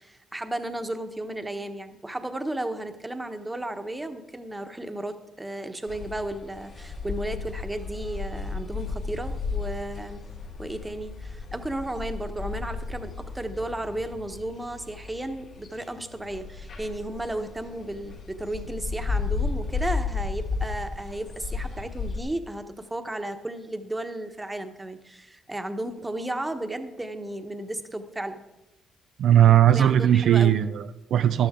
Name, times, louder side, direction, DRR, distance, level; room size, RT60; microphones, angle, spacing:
voice 1, 0.0-10.2 10.6-28.4 29.7-30.6, right 1 dB, 10° right, 7 dB, 1.1 m, -34 dB
sound 1, 5.9-22.2, left 4 dB, 65° left, 3.1 m, -34 dB
voice 2, 29.2-31.5, right 10 dB, 70° right, 10 dB, 0.4 m, -18 dB
13.5 x 12.0 x 3.7 m, 0.96 s
cardioid pair, 90°, 0 cm